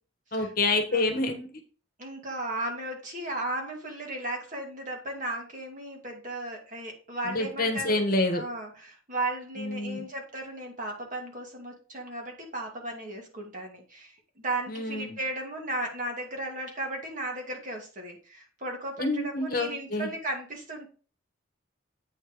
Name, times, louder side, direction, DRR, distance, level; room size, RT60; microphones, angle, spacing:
voice 1, 0.3-1.5 7.3-8.4 9.6-10.0 14.7-15.2 19.0-20.1, left 2 dB, 45° left, 5 dB, 1.4 m, -27 dB
voice 2, 2.0-8.0 8.3-20.9, right 1 dB, 40° right, 1 dB, 2.1 m, -35 dB
8.6 x 4.4 x 4.9 m, 0.38 s
head